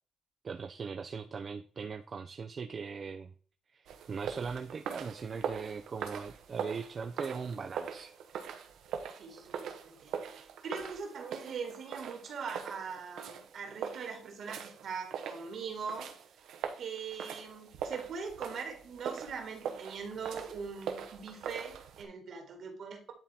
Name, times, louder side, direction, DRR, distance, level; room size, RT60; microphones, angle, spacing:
voice 1, 0.4-3.3 3.7-8.1 9.3-9.5, right 5 dB, 45° right, 5 dB, 0.6 m, -40 dB
sound 1, 3.9-22.0, right 7 dB, 80° right, 1.1 m, -42 dB
voice 2, 9.2-9.5 9.8-16.1 16.8-23.1, right 5 dB, 65° right, 4 dB, 2.2 m, -41 dB
10.5 x 3.8 x 4.3 m, 0.43 s
cardioid pair, 90°, 0 cm